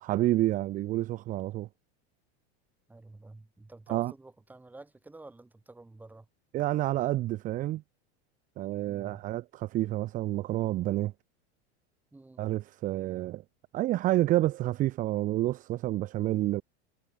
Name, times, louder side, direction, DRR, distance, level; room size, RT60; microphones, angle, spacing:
voice 1, 0.0-1.7 3.9-4.1 6.5-7.8 8.6-11.1 12.4-13.4 13.7-16.6, right 15 dB, 25° right, 1.0 m, -29 dB
voice 2, 2.9-6.3 8.8-9.2 12.1-12.5, right 2 dB, 5° right, 5.1 m, -50 dB
supercardioid pair, 170°, 33 cm